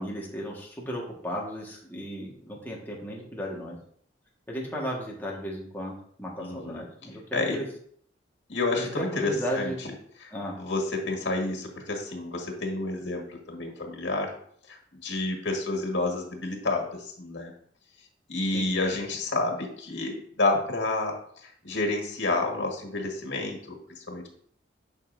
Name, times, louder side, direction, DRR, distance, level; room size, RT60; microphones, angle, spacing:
voice 1, 0.0-3.8 4.5-7.6 8.8-9.8 10.3-10.6 18.5-18.7, equal, 10° left, -3 dB, 1.7 m, -35 dB
voice 2, 6.4-6.8 7.3-7.6 8.5-9.9 10.2-10.3 10.6-14.3 14.7-17.5 18.3-21.1 21.4-24.3, left 2 dB, 80° left, 1 dB, 1.8 m, -29 dB
11.0 x 5.5 x 2.7 m, 0.62 s
head